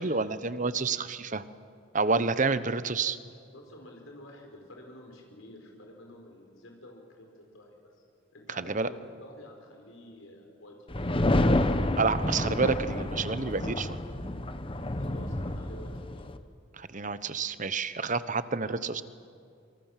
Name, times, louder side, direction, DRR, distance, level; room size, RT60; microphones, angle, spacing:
voice 1, 0.0-1.4 1.9-3.2 8.6-8.9 12.0-14.0 16.8-19.0, right 4 dB, 40° right, 13 dB, 1.0 m, -29 dB
voice 2, 3.5-7.9 8.3-11.3 15.0-16.3 18.6-18.8, left 1 dB, 90° left, 1 dB, 5.0 m, -50 dB
sound 1, 10.9-16.4, left 1 dB, 25° left, 1.1 m, -29 dB
27.5 x 25.0 x 7.5 m, 2.4 s
head